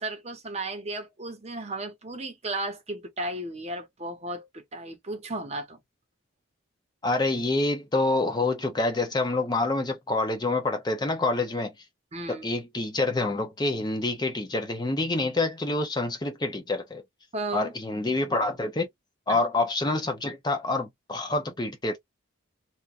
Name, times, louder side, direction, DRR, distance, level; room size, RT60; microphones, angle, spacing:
voice 1, 0.0-5.8 12.1-12.5 17.3-17.7 19.3-19.4, right 2 dB, 30° right, 0.8 m, -34 dB
voice 2, 7.0-11.7 12.3-17.0 17.5-18.9 19.3-22.0, left 2 dB, 20° left, 0.5 m, -27 dB
2.9 x 2.3 x 2.4 m
head